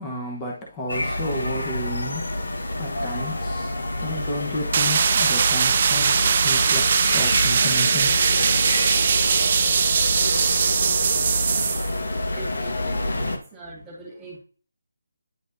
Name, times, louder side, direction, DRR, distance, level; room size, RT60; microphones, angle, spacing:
voice 1, 0.0-8.2, left 1 dB, 15° left, 0.9 m, -32 dB
sound 1, 0.9-13.4, left 1 dB, 70° left, 1.1 m, -27 dB
sound 2, 4.7-11.9, right 7 dB, 35° right, 0.3 m, -21 dB
voice 2, 12.4-14.4, right 3 dB, 10° right, 2.0 m, -43 dB
9.5 x 4.1 x 2.6 m
figure-of-eight pair, 165°, 0 cm